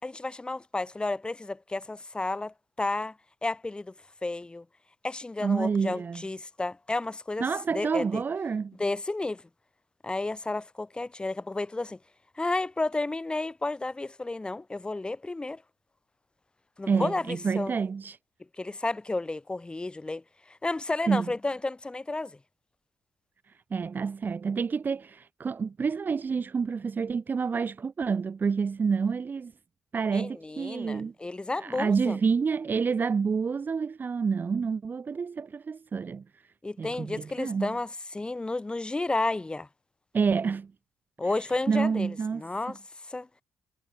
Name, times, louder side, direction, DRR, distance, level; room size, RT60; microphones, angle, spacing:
voice 1, 0.0-3.1 3.4-3.9 4.2-4.6 5.0-7.4 7.7-8.2 8.8-9.4 10.0-12.0 12.4-15.6 16.8-17.8 18.6-22.4 30.1-32.2 36.6-39.7 41.2-42.8 43.1-43.4, left 2 dB, 20° left, 4.5 m, -32 dB
voice 2, 5.4-6.2 7.4-8.8 16.9-18.2 21.1-21.3 23.7-29.5 29.9-31.1 31.6-36.4 36.8-37.8 40.1-40.7 41.2-41.3 41.7-42.4 42.7-42.8, right 5 dB, 40° right, 3.3 m, -28 dB
supercardioid pair, 65°, 5 cm